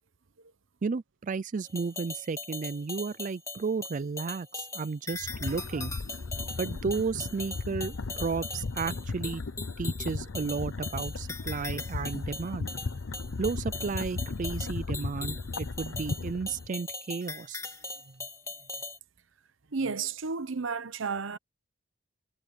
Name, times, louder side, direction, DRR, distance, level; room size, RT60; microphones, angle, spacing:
voice 1, 0.8-5.9 6.6-9.4 9.8-12.7 13.4-17.6, right 4 dB, 40° right, 0.4 m, -33 dB
sound 1, 1.7-19.0, left 3 dB, 15° left, 2.3 m, -40 dB
sound 2, 5.1-16.7, left 3 dB, 90° left, 0.7 m, -36 dB
voice 2, 19.7-21.4, right 5 dB, 90° right, 0.9 m, -32 dB
head